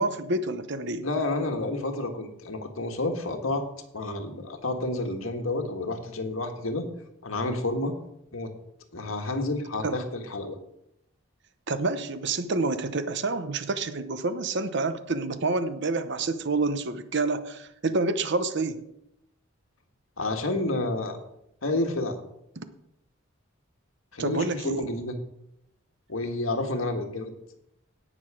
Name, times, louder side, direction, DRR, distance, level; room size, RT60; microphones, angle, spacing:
voice 1, 0.0-1.0 9.8-10.0 11.7-18.8 22.6-22.7 24.2-24.8, right 3 dB, 60° right, 11 dB, 0.9 m, -28 dB
voice 2, 1.0-3.6 3.9-6.9 7.2-7.9 8.3-8.5 8.9-10.6 20.2-21.2 21.6-22.2 24.1-25.2 26.1-27.3, left 2 dB, 85° left, 4 dB, 1.7 m, -30 dB
17.5 x 6.4 x 4.9 m, 0.80 s
head